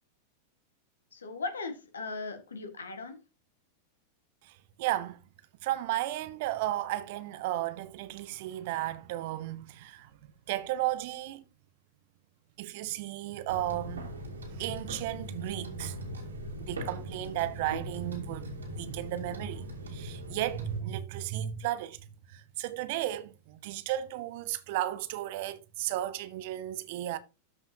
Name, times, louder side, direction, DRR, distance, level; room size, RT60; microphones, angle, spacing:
voice 1, 1.1-3.2, left 4 dB, 70° left, 1.6 m, -38 dB
voice 2, 4.4-5.2 5.6-11.4 12.6-14.1 14.5-16.1 16.6-22.0 22.3-27.2, right 14 dB, 50° right, 0.9 m, -34 dB
sound 1, 13.5-20.8, equal, 75° right, 2.8 m, -40 dB
13.0 x 5.5 x 2.8 m
figure-of-eight pair, 90°, 0 cm